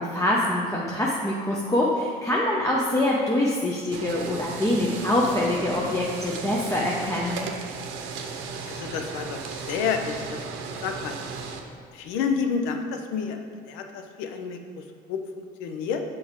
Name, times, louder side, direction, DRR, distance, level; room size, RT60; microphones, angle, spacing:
voice 1, 0.0-7.5 8.0-8.1, left 1 dB, 15° left, -4 dB, 0.8 m, -25 dB
sound 1, 3.9-11.6, right 5 dB, 70° right, 0.7 m, -35 dB
voice 2, 8.5-11.3 11.9-13.4 13.6-16.0, left 6 dB, 75° left, 6 dB, 0.7 m, -30 dB
6.3 x 4.7 x 3.7 m, 2.2 s
hypercardioid pair, 70°, 21 cm